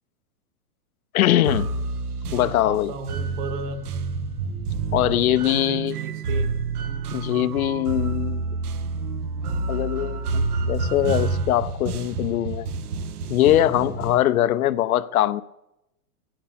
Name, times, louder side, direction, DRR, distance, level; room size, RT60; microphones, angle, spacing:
voice 1, 1.1-1.7 2.3-2.9 4.9-6.0 7.1-8.4 9.7-12.7 13.3-15.4, left 13 dB, 65° left, 0.7 m, -22 dB
sound 1, 1.5-14.2, right 4 dB, 75° right, 1.5 m, -28 dB
voice 2, 2.2-3.9 5.1-6.6, right 4 dB, 30° right, 1.5 m, -35 dB
14.5 x 8.9 x 8.5 m
supercardioid pair, 175°, 45 cm